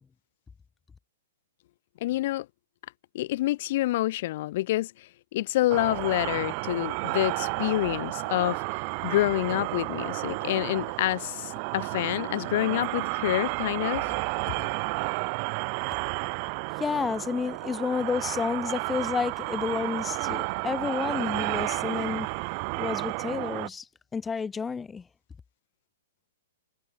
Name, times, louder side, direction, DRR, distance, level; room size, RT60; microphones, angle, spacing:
voice 1, 2.0-2.5 3.1-14.1, left 16 dB, 50° left, 1.1 m, -28 dB
sound 1, 5.7-23.7, right 37 dB, 40° right, 0.8 m, -32 dB
voice 2, 16.8-22.3 22.8-23.9 24.1-25.0, left 5 dB, 15° left, 2.9 m, -30 dB
hypercardioid pair, 120°, 0 cm